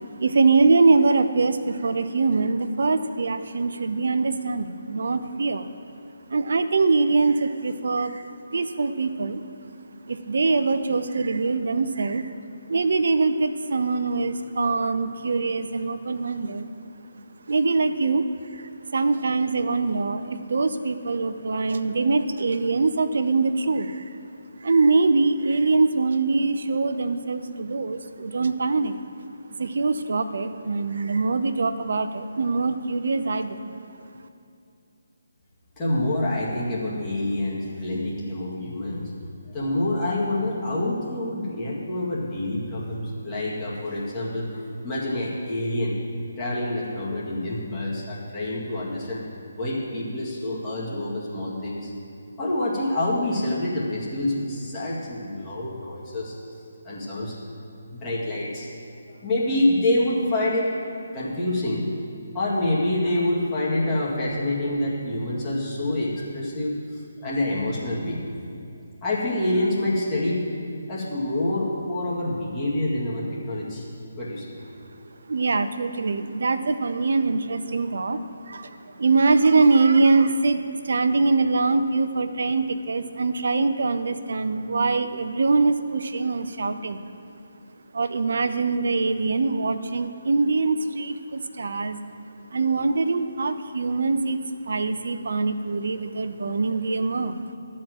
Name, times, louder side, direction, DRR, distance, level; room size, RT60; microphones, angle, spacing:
voice 1, 0.2-5.7 6.3-9.4 10.1-12.3 12.7-16.7 17.5-18.2 18.5-24.2 24.6-29.0 29.6-33.8 75.3-87.0 87.9-92.0 92.5-94.4 94.7-97.4, right 3 dB, 60° right, 10 dB, 0.6 m, -23 dB
voice 2, 35.8-39.1 39.5-46.0 46.4-49.2 49.6-51.9 52.4-56.4 56.8-57.4 57.9-58.7 59.1-60.7 61.1-61.9 62.3-68.2 69.0-70.5 70.9-73.9 74.2-74.8, left 1 dB, 25° left, -7 dB, 2.0 m, -27 dB
12.5 x 4.3 x 7.7 m, 2.6 s
figure-of-eight pair, 145°, 0 cm